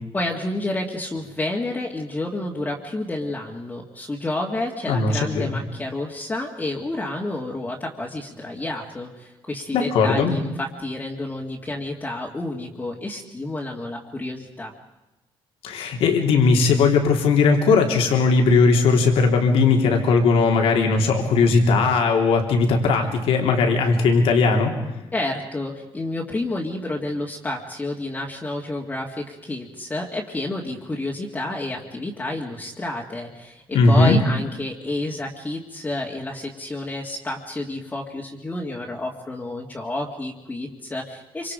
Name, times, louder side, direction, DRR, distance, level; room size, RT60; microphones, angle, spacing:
voice 1, 0.1-14.7 25.1-41.5, left 2 dB, 15° left, -3 dB, 2.1 m, -30 dB
voice 2, 4.9-5.6 9.7-10.4 15.6-24.7 33.7-34.2, left 4 dB, 85° left, 3 dB, 3.3 m, -18 dB
26.5 x 25.5 x 5.1 m, 1.0 s
cardioid pair, 145°, 10 cm